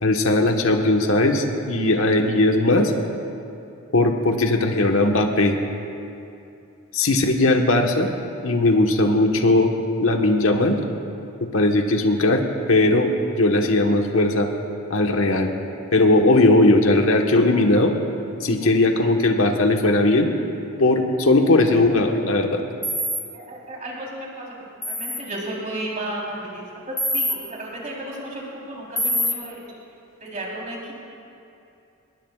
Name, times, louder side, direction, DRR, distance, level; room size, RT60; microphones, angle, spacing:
voice 1, 0.0-2.9 3.9-5.6 6.9-8.1 8.4-9.7 10.0-10.8 11.5-12.4 12.7-14.5 14.9-15.5 15.9-17.9 18.4-20.3 20.8-22.6, left 2 dB, 85° left, 3 dB, 1.3 m, -18 dB
sound 1, 22.8-23.2 24.8-25.2 27.0-27.4 29.0-29.3, equal, 10° left, 1.6 m, -24 dB
voice 2, 23.3-24.5 24.8-29.6 30.2-30.9, right 1 dB, 40° right, -4 dB, 3.7 m, -33 dB
23.5 x 20.5 x 2.4 m, 2.7 s
head